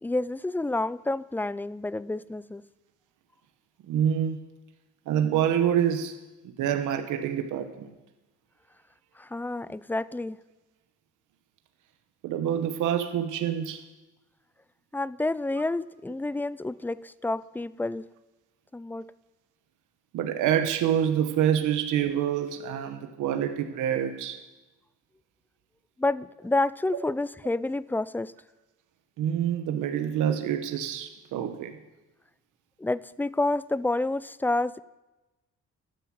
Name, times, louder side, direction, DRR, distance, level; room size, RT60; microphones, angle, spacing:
voice 1, 0.0-2.6 9.2-10.4 14.9-18.1 18.7-19.1 26.0-28.3 32.8-34.8, left 2 dB, 5° left, 18 dB, 0.5 m, -29 dB
voice 2, 3.9-4.4 5.1-6.2 6.4-7.9 12.2-13.8 20.1-24.4 29.2-31.8, right 9 dB, 85° right, 7 dB, 1.2 m, -26 dB
13.5 x 12.0 x 7.6 m, 1.1 s
cardioid pair, 90°, 30 cm